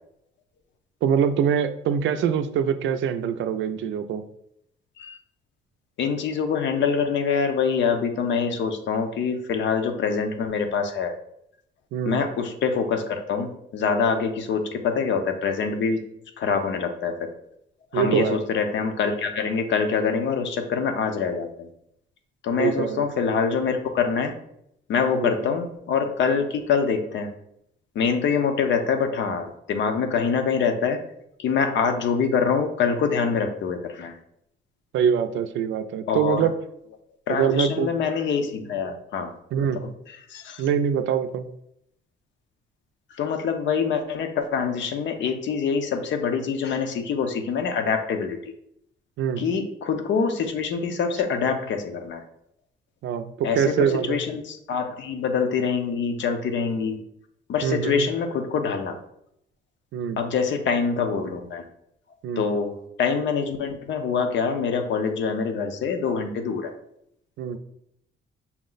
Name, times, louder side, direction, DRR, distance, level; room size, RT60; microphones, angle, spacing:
voice 1, 1.0-4.2 11.9-12.2 17.9-18.4 22.6-23.0 25.1-25.5 34.9-36.5 37.3-37.9 39.5-39.8 40.6-41.4 49.2-49.4 53.0-54.2 57.6-58.1 59.9-60.2 62.2-62.5 67.4-67.6, right 8 dB, 75° right, 9 dB, 0.4 m, -24 dB
voice 2, 6.0-11.1 12.0-16.0 16.4-17.3 17.9-21.7 22.4-24.3 24.9-27.3 27.9-31.0 31.4-34.1 36.1-36.4 37.3-39.3 39.6-39.7 40.3-40.6 43.2-48.4 49.4-52.2 53.4-57.0 57.5-59.0 60.2-61.6 62.4-66.7, left 6 dB, 70° left, 6 dB, 0.7 m, -25 dB
5.8 x 2.1 x 3.8 m, 0.76 s
cardioid pair, 90°, 20 cm